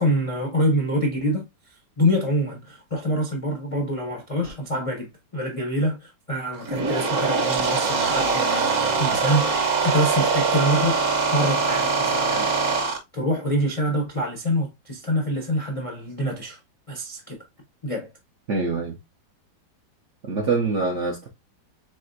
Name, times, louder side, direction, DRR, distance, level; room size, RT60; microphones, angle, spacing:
voice 1, 0.0-1.4 2.0-8.7 9.0-11.0 11.3-12.5 12.8-16.6 16.9-17.4 17.8-18.1, equal, 45° left, 0.4 m, -25 dB
sound 1, 6.5-13.0, right 4 dB, 50° right, 1.2 m, -23 dB
voice 2, 18.5-19.0 20.2-21.3, right 4 dB, 65° right, 0.7 m, -24 dB
4.1 x 3.7 x 2.6 m
omnidirectional pair, 2.0 m